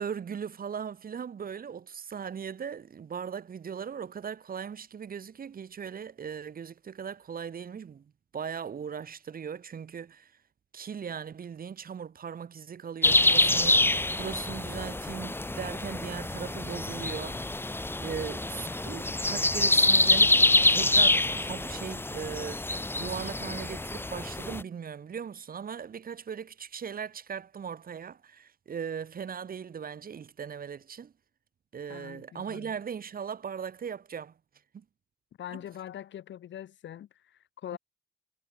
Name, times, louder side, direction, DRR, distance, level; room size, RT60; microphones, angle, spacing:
voice 1, 0.0-10.3 10.7-17.4 18.0-22.7 23.0-31.1 31.7-34.3 34.7-34.8 37.7-37.8, right 7 dB, 45° right, 2.5 m, -38 dB
sound 1, 13.0-24.6, left 2 dB, 10° left, 1.5 m, -26 dB
voice 2, 31.9-32.7 35.4-37.8, left 11 dB, 70° left, 3.0 m, -43 dB
cardioid pair, 90°, 20 cm